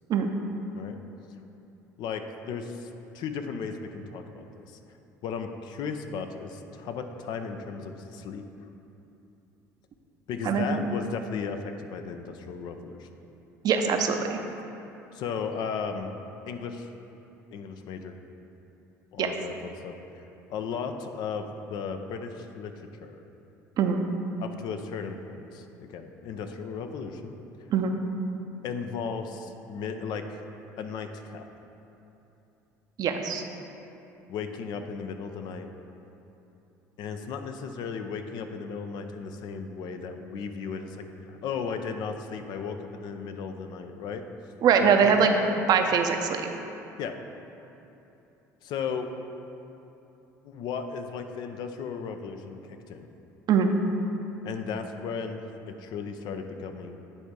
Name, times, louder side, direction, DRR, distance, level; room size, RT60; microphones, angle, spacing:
voice 1, 2.0-2.9 3.1-4.8 5.2-8.4 10.3-13.2 15.1-16.1 16.5-16.9 17.5-18.1 19.1-19.9 20.5-22.7 23.0-23.2 24.4-27.3 28.6-30.4 30.8-31.5 34.3-35.7 37.0-44.2 44.8-45.3 47.0-47.2 48.6-49.1 50.4-53.1 54.4-55.4 55.7-56.9, left 5 dB, 60° left, 6 dB, 0.5 m, -35 dB
voice 2, 10.4-10.9 13.6-14.4 19.2-19.3 23.8-24.0 27.7-27.9 33.0-33.4 44.6-45.4 45.7-46.5 53.5-53.7, right 6 dB, 50° right, 5 dB, 0.6 m, -22 dB
9.7 x 3.5 x 4.7 m, 2.9 s
hypercardioid pair, 65°, 8 cm